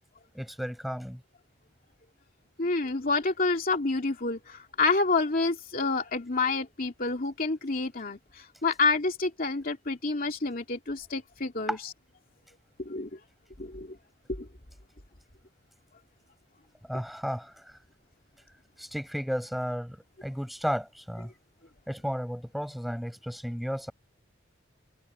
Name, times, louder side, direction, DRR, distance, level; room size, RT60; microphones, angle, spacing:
voice 1, 0.3-1.2 11.7-11.8 16.9-17.7 18.8-21.3 21.9-23.9, equal, ahead, 7.1 m, -33 dB
voice 2, 2.6-11.8 12.8-13.2 13.6-14.0 14.3-14.5, left 3 dB, 45° left, 2.6 m, -28 dB
head